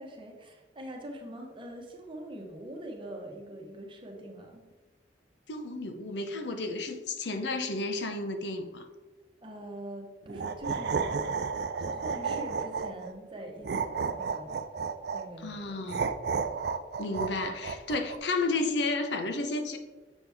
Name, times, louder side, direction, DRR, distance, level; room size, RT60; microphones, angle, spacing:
voice 1, 0.0-4.6 9.4-14.6 15.1-15.8 16.5-16.7, right 1 dB, 30° right, 1 dB, 1.0 m, -43 dB
voice 2, 5.5-8.9 15.4-16.0 17.0-19.8, left 2 dB, 70° left, 6 dB, 0.7 m, -32 dB
sound 1, 10.3-13.1 13.6-15.3 15.9-18.2, right 5 dB, 60° right, 0.4 m, -32 dB
7.2 x 6.0 x 3.5 m, 1.2 s
head